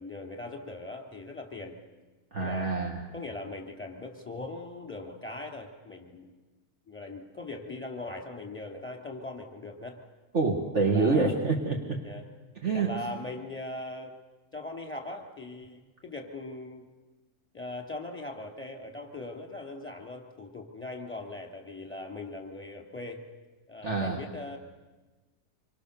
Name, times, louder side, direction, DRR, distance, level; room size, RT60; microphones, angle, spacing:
voice 1, 0.0-1.8 2.4-2.8 3.1-6.3 6.9-10.0 10.9-11.3 12.0-12.3 12.7-14.1 14.5-16.9 17.5-23.2 23.7-24.6, left 2 dB, 5° left, 2 dB, 3.0 m, -40 dB
voice 2, 2.3-3.0 10.3-12.0 12.6-12.9 23.8-24.2, right 4 dB, 50° right, 1 dB, 2.0 m, -26 dB
26.5 x 24.0 x 6.8 m, 1.2 s
omnidirectional pair, 1.6 m